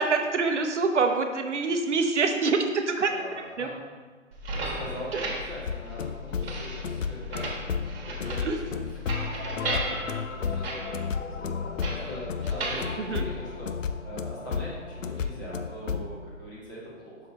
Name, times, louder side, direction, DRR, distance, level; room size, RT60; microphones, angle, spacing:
voice 1, 0.0-3.1 3.6-3.7 5.1-5.3 8.4-8.6 13.0-13.2, right 4 dB, 65° right, 5 dB, 0.7 m, -25 dB
voice 2, 3.1-3.8 4.5-7.5 8.0-9.0 9.5-13.7 14.0-17.2, equal, 15° left, -7 dB, 1.3 m, -42 dB
sound 1, 4.3-14.0, right 1 dB, 50° right, 1.3 m, -36 dB
sound 2, 5.7-16.2, left 6 dB, 80° left, 0.6 m, -32 dB
5.8 x 5.3 x 4.0 m, 1.4 s
hypercardioid pair, 160°, 38 cm